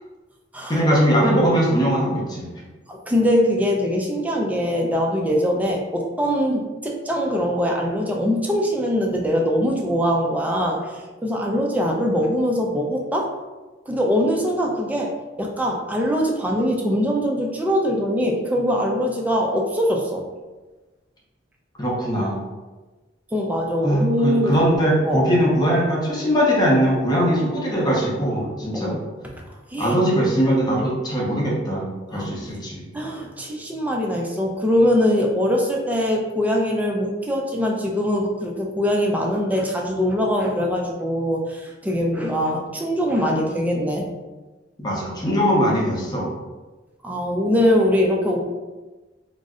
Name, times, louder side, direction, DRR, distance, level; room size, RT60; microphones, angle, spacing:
voice 1, 0.7-2.5 21.8-22.4 23.8-29.0 29.8-32.8 44.8-46.3, equal, 20° left, -4 dB, 0.7 m, -20 dB
voice 2, 2.9-13.3 13.9-15.1 15.4-20.2 23.3-24.6 25.0-25.2 28.7-29.0 29.5-30.0 32.1-32.3 32.9-44.1 47.0-48.4, equal, 10° right, 0 dB, 0.4 m, -22 dB
2.5 x 2.0 x 3.5 m, 1.2 s
head